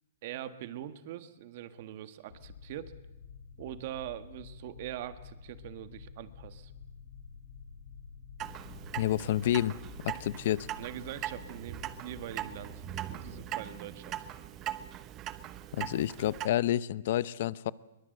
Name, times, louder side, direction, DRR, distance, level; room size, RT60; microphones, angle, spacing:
voice 1, 0.2-3.0 3.6-6.7 10.8-14.2, right 12 dB, 45° right, 11 dB, 1.6 m, -43 dB
sound 1, 2.3-15.3, left 6 dB, 70° left, 3.0 m, -50 dB
Clock, 8.4-16.5, right 12 dB, 25° right, 1.0 m, -41 dB
voice 2, 9.0-9.8 10.0-10.7 15.7-17.7, left 12 dB, 50° left, 19 dB, 0.7 m, -29 dB
22.5 x 22.5 x 7.9 m, 0.97 s
hypercardioid pair, 160°, 0 cm